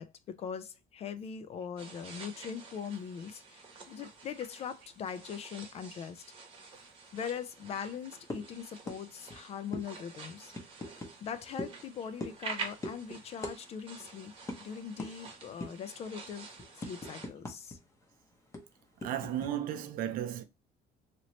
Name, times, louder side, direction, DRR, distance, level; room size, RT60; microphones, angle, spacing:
voice 1, 0.0-6.2 7.1-10.5 11.2-16.5 16.7-17.8, left 7 dB, 40° left, 0.4 m, -41 dB
sound 1, 1.8-17.3, right 4 dB, 35° right, 1.0 m, -48 dB
sound 2, 8.3-8.5 8.9-9.0 9.3-9.4 9.7-9.9 10.5-11.1 11.6-11.8 12.2-12.5 12.8-13.0 13.4-13.6 13.8-14.0 14.5-14.6 15.0-15.1 15.6-15.9 16.3-17.8 18.0-18.1 18.5-19.5, left 1 dB, 20° left, 0.7 m, -40 dB
voice 2, 19.0-20.4, right 10 dB, 60° right, 0.5 m, -35 dB
3.0 x 2.9 x 2.9 m
cardioid pair, 150°, 17 cm